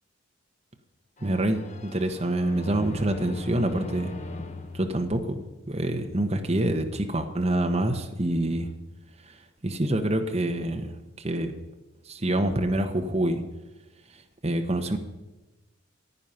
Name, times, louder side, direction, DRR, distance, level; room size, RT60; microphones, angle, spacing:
sound 1, 1.2-5.9, left 2 dB, 35° left, 1.0 m, -40 dB
voice 1, 1.2-4.1 4.7-8.7 9.2-9.4 9.6-11.5 12.0-13.4 14.1-15.0, right 1 dB, 30° right, 4 dB, 1.1 m, -26 dB
15.5 x 9.4 x 5.7 m, 1.1 s
head